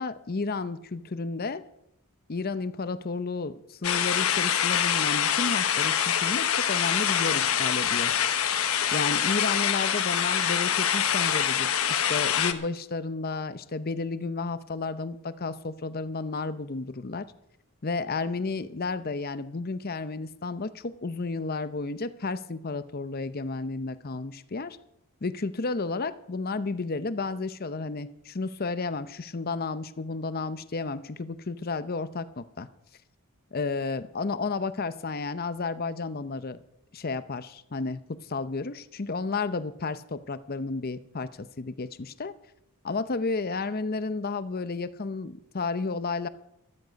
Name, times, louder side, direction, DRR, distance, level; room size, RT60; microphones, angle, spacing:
voice 1, 0.0-1.6 2.3-8.1 8.9-17.3 17.8-24.8 25.2-32.7 33.5-36.6 36.9-42.3 42.8-46.3, left 3 dB, 40° left, 13 dB, 0.7 m, -32 dB
sound 1, 3.8-12.5, left 9 dB, 70° left, 1.1 m, -25 dB
14.5 x 13.0 x 5.2 m, 0.82 s
head